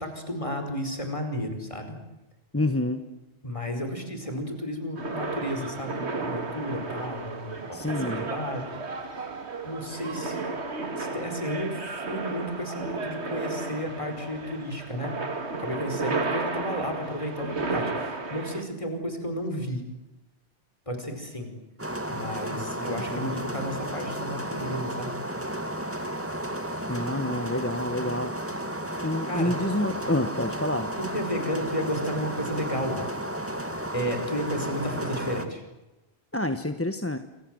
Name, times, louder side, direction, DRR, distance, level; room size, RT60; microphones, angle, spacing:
voice 1, 0.0-1.9 3.4-8.8 9.6-10.4 11.0-11.8 12.1-15.1 15.6-19.8 20.9-21.5 22.1-25.2 29.3-29.5 31.1-33.1 33.9-35.6, equal, 30° left, 6 dB, 5.1 m, -32 dB
voice 2, 2.5-3.0 7.7-8.3 22.5-23.5 26.9-28.3 29.0-30.9 36.3-37.2, left 1 dB, 15° left, 8 dB, 1.1 m, -28 dB
sound 1, 5.0-18.6, right 3 dB, 75° right, 2.5 m, -33 dB
sound 2, 21.8-35.5, right 1 dB, 10° right, 2.1 m, -33 dB
28.5 x 25.5 x 7.8 m, 1.0 s
omnidirectional pair, 1.1 m